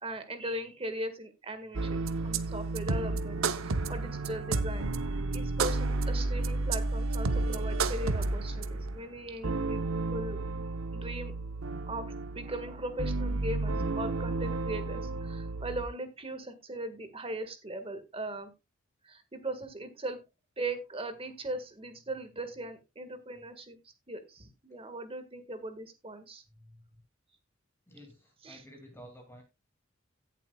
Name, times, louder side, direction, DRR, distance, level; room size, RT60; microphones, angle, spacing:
voice 1, 0.0-9.8 10.1-10.4 10.9-11.3 11.9-18.5 19.0-20.2 20.6-23.8 24.1-26.4 28.4-28.6, right 1 dB, 30° right, 9 dB, 1.7 m, -39 dB
sound 1, 1.7-15.9, right 3 dB, 90° right, 0.8 m, -32 dB
voice 2, 27.9-29.4, equal, 10° left, 2 dB, 2.4 m, -51 dB
17.0 x 7.4 x 2.3 m, 0.24 s
head